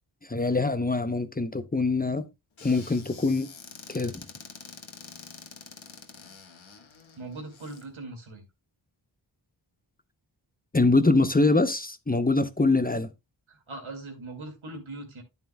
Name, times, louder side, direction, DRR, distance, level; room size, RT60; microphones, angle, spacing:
voice 1, 0.2-2.3 2.6-3.5 3.9-4.3 10.7-13.1, left 3 dB, 20° left, 0.7 m, -24 dB
Squeak / Cupboard open or close, 2.6-7.8, left 5 dB, 75° left, 1.4 m, -47 dB
voice 2, 7.2-8.4 13.5-15.2, right 2 dB, 90° right, 2.1 m, -40 dB
9.2 x 9.2 x 2.2 m
cardioid pair, 50°, 47 cm